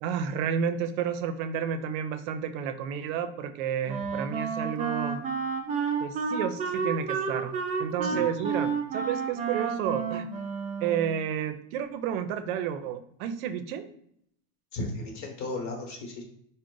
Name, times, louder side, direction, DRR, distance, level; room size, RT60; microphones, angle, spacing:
voice 1, 0.0-5.2 6.0-7.5 7.8-10.3 10.8-13.9, right 8 dB, 85° right, 9 dB, 0.5 m, -31 dB
Wind instrument woodwind instrument, 3.9-11.3, right 5 dB, 20° right, 0.3 m, -31 dB
voice 2, 14.7-16.2, left 2 dB, 45° left, 2 dB, 1.1 m, -35 dB
3.6 x 2.1 x 3.7 m, 0.70 s
supercardioid pair, 135°, 39 cm